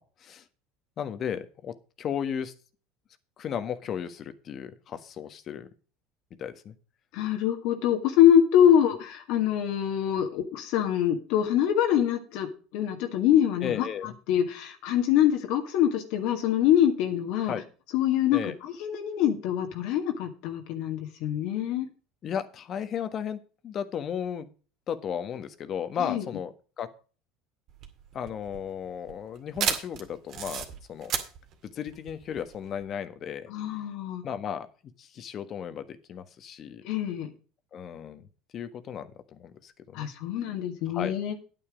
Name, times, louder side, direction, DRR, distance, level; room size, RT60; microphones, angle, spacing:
voice 1, 1.0-2.5 3.4-5.7 6.4-6.7 13.6-14.1 17.5-17.6 18.3-18.5 22.2-24.5 24.9-26.9 28.1-31.1 31.6-33.5 34.2-34.7 35.0-36.8 37.7-38.3 38.5-40.1 40.9-41.1, left 8 dB, 45° left, 11 dB, 1.4 m, -35 dB
voice 2, 7.1-17.5 17.9-21.9 26.0-26.2 33.5-34.2 36.8-37.3 39.9-41.4, left 10 dB, 70° left, 4 dB, 1.9 m, -24 dB
sound 1, 27.7-32.8, right 8 dB, 55° right, 2.2 m, -34 dB
9.3 x 9.2 x 5.0 m, 0.36 s
supercardioid pair, 105°, 0 cm